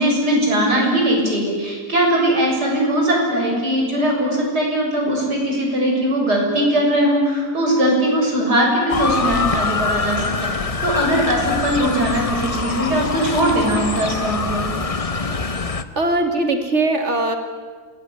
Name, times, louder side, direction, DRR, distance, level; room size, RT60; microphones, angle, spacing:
voice 1, 0.0-14.7, right 1 dB, 85° right, -1 dB, 7.6 m, -20 dB
Motor vehicle (road) / Siren, 8.9-15.8, left 4 dB, 25° left, 0.9 m, -24 dB
voice 2, 16.0-17.4, right 2 dB, 45° right, 6 dB, 3.1 m, -20 dB
26.5 x 19.5 x 10.0 m, 1.5 s
omnidirectional pair, 1.7 m